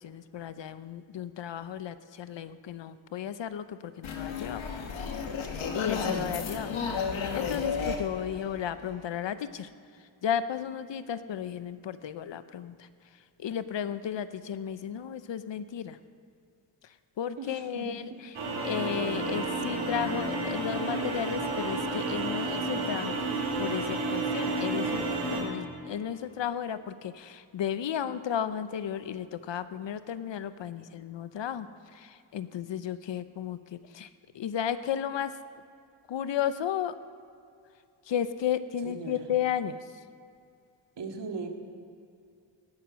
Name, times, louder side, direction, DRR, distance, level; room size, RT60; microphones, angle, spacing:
voice 1, 0.0-4.6 5.7-9.7 10.2-12.9 13.4-16.0 17.2-18.1 18.6-23.2 23.6-31.7 31.9-34.1 34.3-35.3 36.1-36.9 38.1-39.8, left 9 dB, 70° left, 13 dB, 0.8 m, -34 dB
sound 1, 4.0-9.2, left 5 dB, 90° left, 1.5 m, -33 dB
voice 2, 6.1-6.4 17.4-18.2 38.8-39.3 41.0-41.5, right 4 dB, 65° right, 2 dB, 2.1 m, -39 dB
sound 2, 18.3-25.4, right 2 dB, 85° right, 3.8 m, -31 dB
16.5 x 11.5 x 6.3 m, 2.5 s
wide cardioid pair, 115°, 46 cm